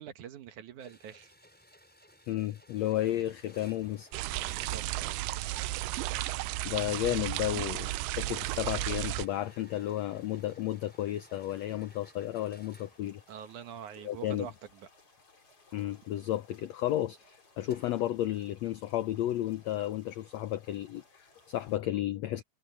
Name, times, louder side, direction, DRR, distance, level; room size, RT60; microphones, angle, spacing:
voice 1, 0.0-1.3 4.5-5.2 13.3-14.9, right 8 dB, 65° right, 2.6 m, -45 dB
sound 1, 0.8-13.8 17.7-18.2, equal, 5° left, 6.1 m, -58 dB
voice 2, 2.3-4.1 6.6-13.2 14.0-14.5 15.7-22.4, left 13 dB, 85° left, 1.5 m, -33 dB
sound 2, 2.7-21.8, left 3 dB, 40° left, 6.7 m, -62 dB
sound 3, 4.1-9.3, right 18 dB, 85° right, 2.3 m, -34 dB
omnidirectional pair, 3.9 m